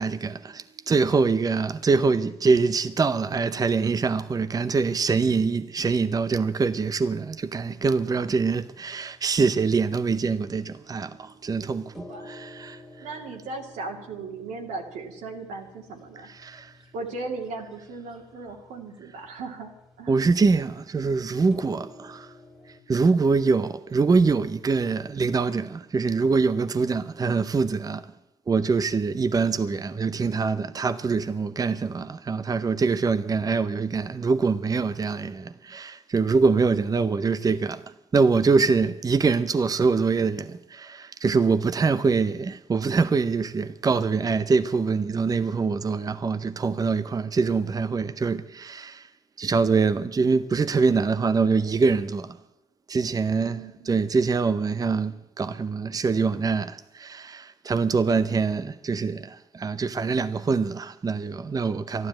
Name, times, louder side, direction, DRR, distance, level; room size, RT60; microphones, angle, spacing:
voice 1, 0.0-13.1 16.2-16.8 20.1-22.3 22.7-28.1 28.5-49.1 49.4-52.4 52.9-62.1, right 4 dB, 30° right, 0.7 m, -24 dB
sound 1, 7.5-22.8, left 2 dB, ahead, 2.4 m, -52 dB
voice 2, 13.0-16.3 16.9-20.1 53.3-53.9, right 3 dB, 85° right, 2.5 m, -37 dB
12.5 x 12.0 x 8.8 m
cardioid pair, 75°, 13 cm